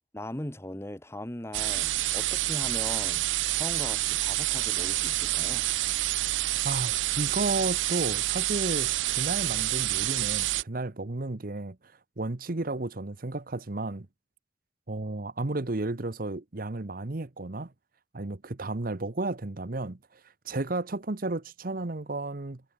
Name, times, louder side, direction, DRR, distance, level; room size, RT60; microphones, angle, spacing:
voice 1, 0.1-5.7, left 1 dB, 15° left, 1.7 m, -39 dB
sound 1, 1.5-10.6, right 16 dB, 90° right, 0.4 m, -28 dB
voice 2, 6.6-11.8 12.2-14.1 14.9-17.7 18.1-20.2 20.4-22.6, right 2 dB, 50° right, 1.0 m, -33 dB
head